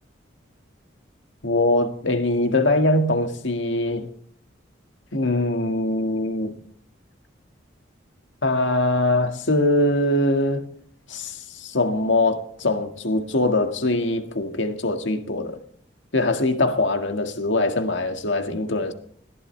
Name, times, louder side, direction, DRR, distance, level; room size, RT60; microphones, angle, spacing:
voice 1, 1.4-4.1 5.1-6.6 8.4-10.7 11.1-15.6 16.1-18.9, left 2 dB, 75° left, 1.8 m, -22 dB
20.5 x 14.5 x 3.3 m
head